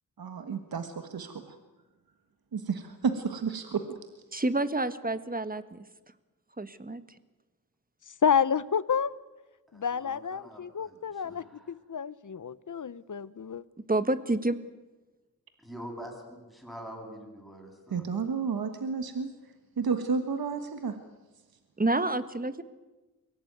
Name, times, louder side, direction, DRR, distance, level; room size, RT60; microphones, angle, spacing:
voice 1, 0.2-1.5 2.5-4.0 17.9-19.3 19.8-21.0, right 5 dB, 85° right, 8 dB, 1.5 m, -31 dB
voice 2, 4.3-5.8 6.6-7.0 13.9-14.6 21.8-22.6, right 2 dB, 25° right, 12 dB, 1.5 m, -28 dB
voice 3, 8.2-9.2 9.7-13.6, left 7 dB, 60° left, 18 dB, 0.9 m, -29 dB
voice 4, 9.7-11.7 15.6-18.0, equal, ahead, 2 dB, 7.7 m, -45 dB
23.5 x 17.0 x 9.3 m, 1.2 s
cardioid pair, 55°, 35 cm